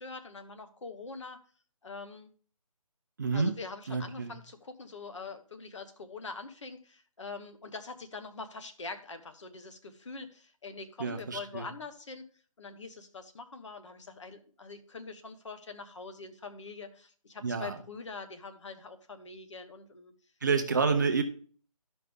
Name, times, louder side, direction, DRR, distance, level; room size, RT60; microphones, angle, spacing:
voice 1, 0.0-1.4 1.8-2.3 3.3-12.2 12.6-20.1, left 4 dB, 50° left, 8 dB, 1.1 m, -44 dB
voice 2, 3.2-3.6 3.9-4.3 11.0-11.7 17.4-17.7 20.4-21.2, right 5 dB, 30° right, 6 dB, 0.6 m, -28 dB
12.5 x 5.3 x 3.5 m, 0.43 s
hypercardioid pair, 165°, 19 cm